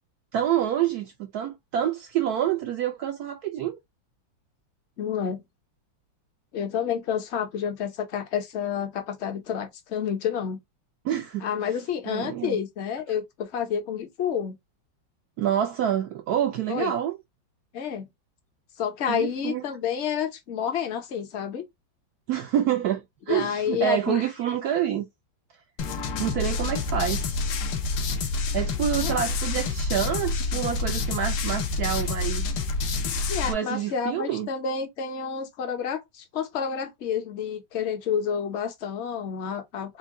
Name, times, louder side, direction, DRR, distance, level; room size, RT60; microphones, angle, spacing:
voice 1, 0.3-3.8 11.0-11.5 12.1-12.6 15.4-17.2 19.1-19.6 22.3-25.1 26.2-27.4 28.5-32.5 33.5-34.5, right 10 dB, 75° right, 0.9 m, -27 dB
voice 2, 5.0-5.4 6.5-10.6 11.4-14.6 16.7-16.9 17.7-18.1 18.8-21.6 23.3-24.2 29.0-29.2 33.3-40.0, left 7 dB, 50° left, 0.9 m, -29 dB
sound 1, 25.8-33.5, left 3 dB, 75° left, 1.5 m, -28 dB
4.6 x 2.2 x 3.6 m
omnidirectional pair, 2.1 m